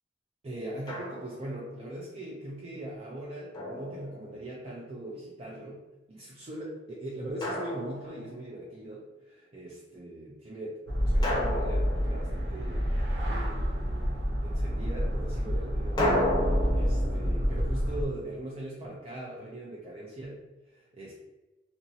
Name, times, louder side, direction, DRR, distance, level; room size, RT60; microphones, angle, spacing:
voice 1, 0.4-21.1, right 1 dB, 35° right, -4 dB, 0.4 m, -41 dB
Drum, 0.9-1.6 3.5-4.6 7.4-8.6 11.2-12.9 16.0-18.9, left 1 dB, 25° left, 0.6 m, -33 dB
sound 1, 10.9-18.0, equal, 90° right, 0.8 m, -28 dB
2.8 x 2.6 x 2.7 m, 1.1 s
head